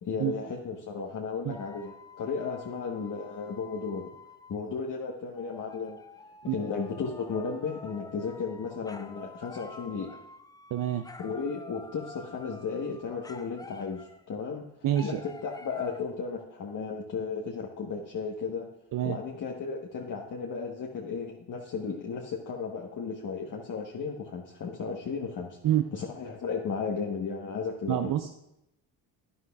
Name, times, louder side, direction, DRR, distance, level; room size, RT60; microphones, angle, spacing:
voice 1, 0.0-4.1 4.5-6.0 6.4-10.1 11.2-14.7 15.0-18.7 19.0-25.6 25.9-28.1, left 5 dB, 40° left, -1 dB, 1.2 m, -34 dB
sound 1, 1.5-4.6 5.3-14.3 14.9-16.0, left 3 dB, 10° left, 0.4 m, -48 dB
voice 2, 10.7-11.1 14.8-15.2 18.9-19.2 25.6-25.9 27.9-28.5, right 12 dB, 45° right, 8 dB, 0.6 m, -27 dB
11.0 x 9.6 x 2.3 m, 0.86 s
supercardioid pair, 65°, 46 cm